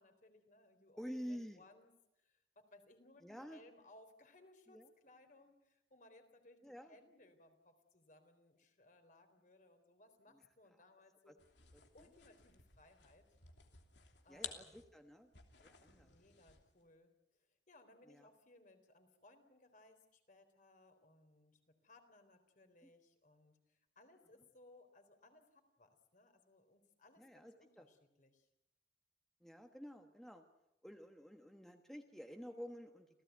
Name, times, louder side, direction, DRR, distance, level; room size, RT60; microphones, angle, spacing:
voice 1, 0.0-11.4 11.7-13.2 14.2-14.9 15.9-17.1 17.4-28.5, left 2 dB, 45° left, 7 dB, 3.9 m, -65 dB
voice 2, 1.0-1.6 3.2-3.6 4.7-4.9 6.6-6.9 10.3-10.4 11.3-11.4 11.7-11.8 14.3-15.3 15.6-16.1 18.1-18.3 27.2-27.9 29.4-30.4 30.8-33.1, equal, ahead, 5 dB, 1.3 m, -50 dB
sound 1, 11.4-16.8, left 8 dB, 80° left, 3.0 m, -54 dB
28.5 x 16.5 x 9.4 m, 0.87 s
head